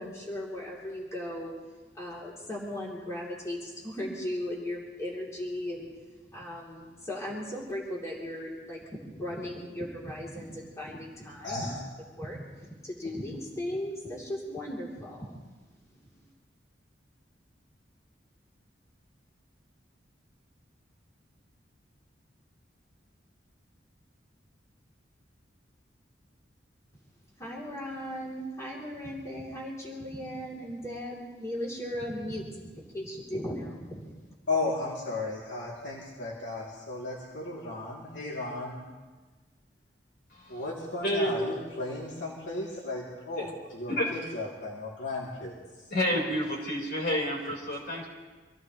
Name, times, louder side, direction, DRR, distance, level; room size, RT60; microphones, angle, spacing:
voice 1, 0.0-1.5 1.9-5.9 6.3-11.7 12.1-15.4 27.4-34.2, left 1 dB, 15° left, -5 dB, 3.2 m, -37 dB
voice 2, 11.4-11.8 34.5-38.8 40.5-45.5, left 2 dB, 90° left, -5 dB, 3.0 m, -35 dB
voice 3, 40.3-40.6 41.0-41.3 43.4-43.5 43.9-44.1 45.9-48.1, equal, 55° left, -2 dB, 4.5 m, -29 dB
26.0 x 16.5 x 3.2 m, 1.3 s
head